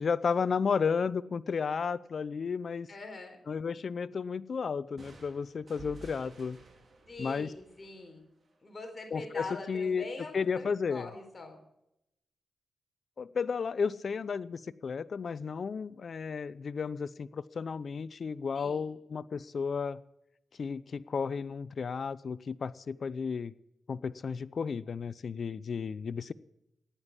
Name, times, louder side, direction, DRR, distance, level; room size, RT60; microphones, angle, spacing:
voice 1, 0.0-2.9 3.5-6.6 7.2-7.5 9.1-10.1 10.3-11.1 13.2-20.0 20.6-23.5 23.9-26.3, left 5 dB, 60° left, 16 dB, 0.6 m, -33 dB
voice 2, 2.9-3.4 7.1-8.2 8.6-11.6 18.5-18.9, left 3 dB, 35° left, 3 dB, 4.1 m, -43 dB
sound 1, 5.0-8.6, right 3 dB, 50° right, 4.4 m, -53 dB
16.0 x 9.9 x 7.2 m, 0.84 s
cardioid pair, 70°, 0 cm